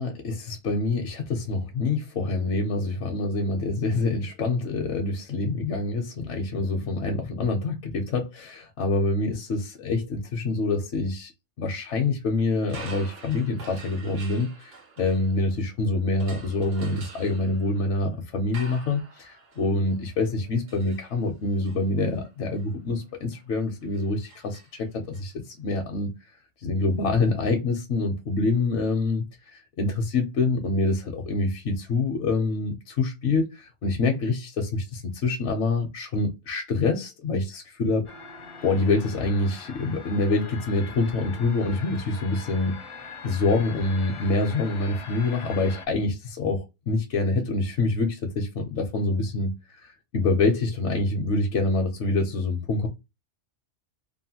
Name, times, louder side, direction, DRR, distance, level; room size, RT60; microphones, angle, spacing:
voice 1, 0.0-11.3 11.6-26.1 26.6-38.1 38.6-42.8 43.2-52.9, left 3 dB, 70° left, 0.9 m, -26 dB
sound 1, 12.6-15.7 16.2-25.2, right 4 dB, 80° right, 1.2 m, -47 dB
sound 2, 38.1-45.9, left 4 dB, 55° left, 0.3 m, -42 dB
3.0 x 2.2 x 2.7 m
omnidirectional pair, 1.2 m